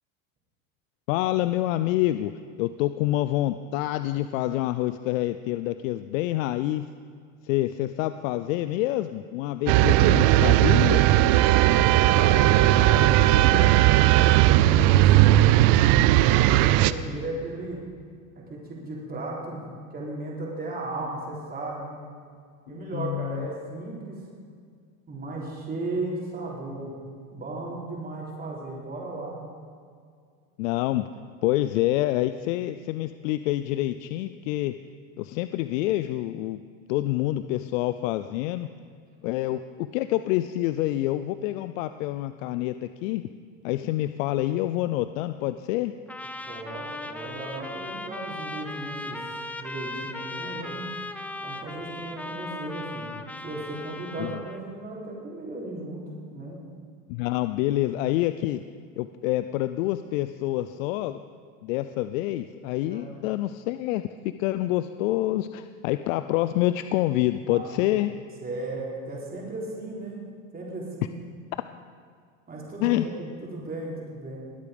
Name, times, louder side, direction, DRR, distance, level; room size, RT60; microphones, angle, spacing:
voice 1, 1.1-2.3 2.6-6.9 7.4-11.0 22.9-23.5 30.6-31.1 31.4-34.7 35.2-36.6 36.9-38.7 39.2-43.3 43.6-45.9 54.2-54.3 57.1-58.6 59.0-61.2 61.6-64.0 64.4-68.1 72.8-73.0, left 15 dB, 75° left, 11 dB, 0.6 m, -27 dB
sound 1, 9.7-16.9, right 14 dB, 55° right, 0.6 m, -18 dB
voice 2, 12.0-13.7 14.2-15.7 16.3-17.8 18.4-19.6 19.9-22.0 22.7-24.2 25.1-27.0 27.3-29.4 46.5-50.9 51.4-53.1 53.4-56.0 56.3-56.6 62.9-63.1 67.5-68.0 68.4-70.2 70.5-71.2 72.5-74.4, right 2 dB, 20° right, -3 dB, 4.0 m, -35 dB
Trumpet, 46.1-54.6, left 2 dB, 5° left, 0.5 m, -37 dB
21.5 x 8.4 x 5.3 m, 2.1 s
supercardioid pair, 120°, 40 cm